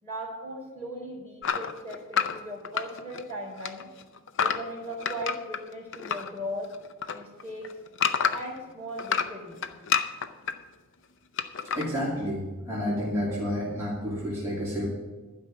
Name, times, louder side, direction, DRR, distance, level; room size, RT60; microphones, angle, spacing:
voice 1, 0.0-3.8 4.4-6.7 7.1-7.8 8.3-9.6, equal, 10° left, -3 dB, 3.8 m, -38 dB
sound 1, 1.4-3.3 3.6-6.3 6.6-8.6 9.0-10.5 11.4-11.9, left 7 dB, 55° left, 0.6 m, -29 dB
voice 2, 11.8-14.9, equal, 15° right, -9 dB, 2.4 m, -30 dB
12.0 x 5.4 x 8.7 m, 1.2 s
head